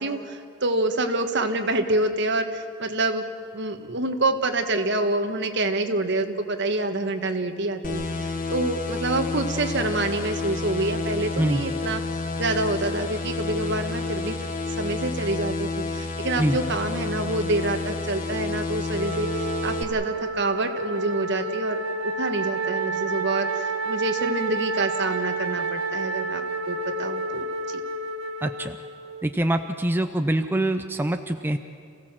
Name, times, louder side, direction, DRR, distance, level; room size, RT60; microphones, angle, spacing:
voice 1, 0.0-3.3 3.5-12.0 12.4-21.8 22.2-27.8, right 2 dB, 60° right, 6 dB, 1.5 m, -27 dB
sound 1, 7.8-19.8, left 3 dB, 45° left, 1.5 m, -30 dB
Wind instrument woodwind instrument, 18.9-29.3, right 3 dB, 75° right, 1.3 m, -30 dB
voice 2, 28.4-28.8 29.2-31.6, right 1 dB, 10° right, 7 dB, 0.6 m, -24 dB
27.5 x 16.5 x 7.5 m, 2.3 s
head